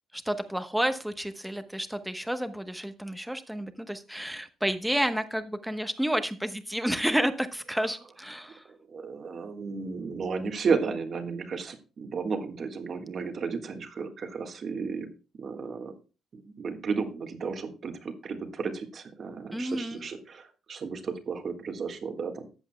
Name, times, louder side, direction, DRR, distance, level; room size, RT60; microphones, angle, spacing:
voice 1, 0.1-8.6 19.5-20.0, equal, 5° right, 9 dB, 1.0 m, -30 dB
voice 2, 8.7-15.1 15.4-15.9 16.3-22.5, right 5 dB, 50° right, 6 dB, 1.5 m, -33 dB
14.0 x 8.1 x 2.2 m, 0.33 s
cardioid pair, 90°, 0 cm